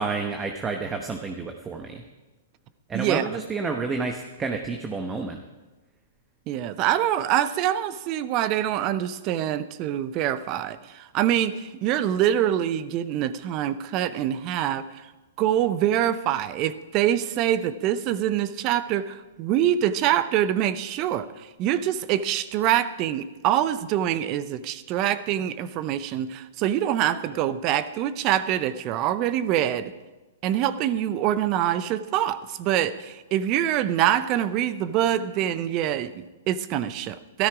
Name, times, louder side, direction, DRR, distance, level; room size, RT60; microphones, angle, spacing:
voice 1, 0.0-2.0 2.9-5.4, right 4 dB, 20° right, 4 dB, 1.0 m, -30 dB
voice 2, 2.9-3.3 6.5-15.1 15.4-29.9 30.4-37.5, right 11 dB, 40° right, 14 dB, 0.7 m, -25 dB
13.0 x 13.0 x 5.0 m, 1.1 s
hypercardioid pair, 115°, 0 cm